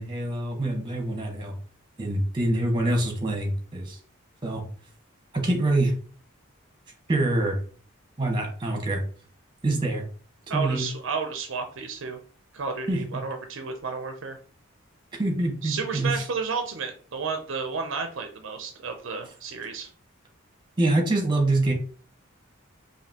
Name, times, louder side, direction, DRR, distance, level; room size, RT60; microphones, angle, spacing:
voice 1, 0.0-1.5 2.0-4.0 4.4-4.6 5.3-5.9 7.1-7.6 8.2-9.0 9.6-10.0 10.5-10.8 12.9-13.0 15.2-16.2 20.8-21.7, right 2 dB, 20° right, 1 dB, 1.1 m, -25 dB
voice 2, 10.5-12.2 12.5-14.4 15.6-19.9, right 5 dB, 60° right, 5 dB, 0.5 m, -32 dB
5.0 x 2.7 x 2.8 m, 0.43 s
head